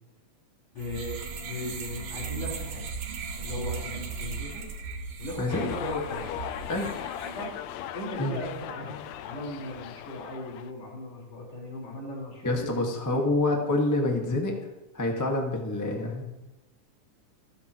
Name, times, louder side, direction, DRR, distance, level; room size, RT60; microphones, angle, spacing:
voice 1, 0.7-2.9 3.4-4.7 5.2-6.3 7.4-7.5 7.9-9.0 9.2-12.7 13.1-13.2, left 2 dB, 55° left, -4 dB, 5.7 m, -37 dB
sound 1, 0.8-7.4, right 5 dB, 80° right, 3.5 m, -37 dB
voice 2, 5.4-5.7 6.7-6.9 8.2-8.3 12.4-14.5 14.9-16.4, left 2 dB, 15° left, 1 dB, 0.7 m, -27 dB
sound 2, 5.5-10.7, left 11 dB, 80° left, 1.7 m, -38 dB
27.0 x 9.4 x 3.1 m, 1.0 s
omnidirectional pair, 3.6 m